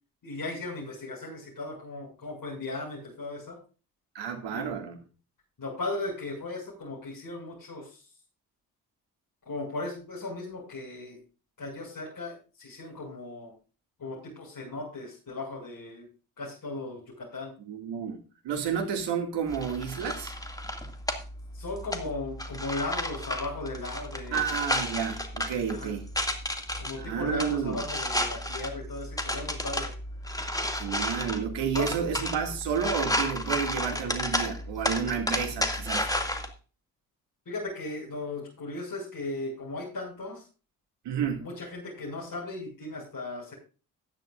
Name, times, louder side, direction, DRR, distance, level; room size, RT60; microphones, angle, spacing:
voice 1, 0.2-3.6 4.5-4.7 5.6-8.0 9.4-11.2 11.6-13.5 14.0-16.1 16.4-17.5 21.5-24.6 25.7-25.9 26.8-29.9 31.7-31.9 37.4-40.4 41.4-43.5, left 2 dB, 45° left, 6.6 m, -37 dB
voice 2, 4.1-5.0 17.7-20.3 24.3-26.1 27.0-27.8 30.7-36.1 41.0-41.5, right 7 dB, 65° right, 2.4 m, -31 dB
sound 1, 19.5-36.5, left 1 dB, 10° left, 2.3 m, -32 dB
15.5 x 10.5 x 2.6 m
hypercardioid pair, 45°, 45 cm